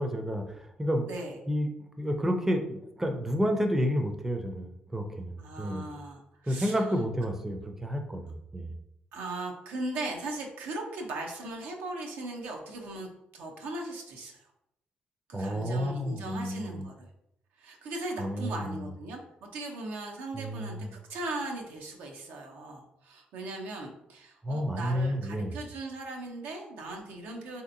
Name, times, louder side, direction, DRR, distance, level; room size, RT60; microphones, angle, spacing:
voice 1, 0.0-1.0 1.5-1.7 2.0-5.9 6.5-8.7 15.3-16.9 18.2-18.9 20.3-20.9 24.4-25.5, equal, 10° right, 4 dB, 0.4 m, -30 dB
voice 2, 1.1-1.4 5.4-6.8 9.1-14.4 15.3-17.1 17.6-27.6, right 2 dB, 85° right, 1 dB, 0.6 m, -38 dB
3.3 x 2.7 x 2.5 m, 0.83 s
cardioid pair, 80°, 3 cm